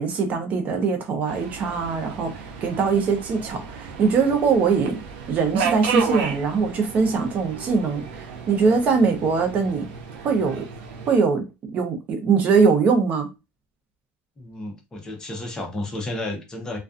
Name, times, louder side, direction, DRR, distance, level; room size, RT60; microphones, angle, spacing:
voice 1, 0.0-5.0 5.3-9.9 10.2-10.7 11.1-11.4 11.7-13.3, right 5 dB, 35° right, 0.6 m, -22 dB
Subway metro underground, 1.3-11.2, right 6 dB, 90° right, 0.5 m, -32 dB
voice 2, 14.4-16.8, left 2 dB, 15° left, 0.6 m, -32 dB
2.4 x 2.2 x 2.4 m
cardioid pair, 155°, 5 cm